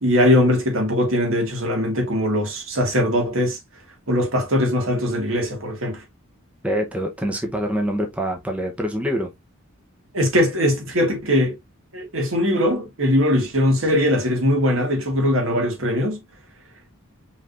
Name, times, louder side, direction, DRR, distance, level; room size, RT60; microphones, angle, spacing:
voice 1, 0.0-3.6 4.1-6.0 10.1-11.6 11.9-16.2, left 1 dB, 70° right, 1.9 m, -20 dB
voice 2, 6.6-9.3, equal, 5° right, 0.8 m, -25 dB
5.4 x 3.3 x 2.5 m
head